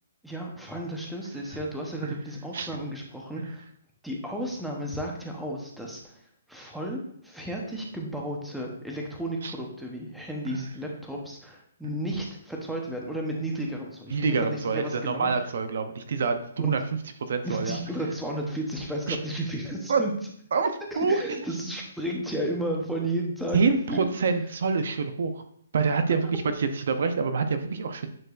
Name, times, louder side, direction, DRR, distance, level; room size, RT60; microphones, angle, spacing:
voice 1, 0.2-3.6 4.0-6.2 6.5-15.3 16.6-16.7 17.4-20.1 20.9-24.1, right 1 dB, ahead, -1 dB, 0.9 m, -33 dB
voice 2, 14.1-16.8 17.2-17.8 19.1-19.2 19.9-20.0 20.5-21.2 23.5-25.4 25.7-28.1, right 5 dB, 65° right, 8 dB, 0.6 m, -26 dB
9.6 x 4.5 x 2.5 m, 0.66 s
hypercardioid pair, 155°, 0 cm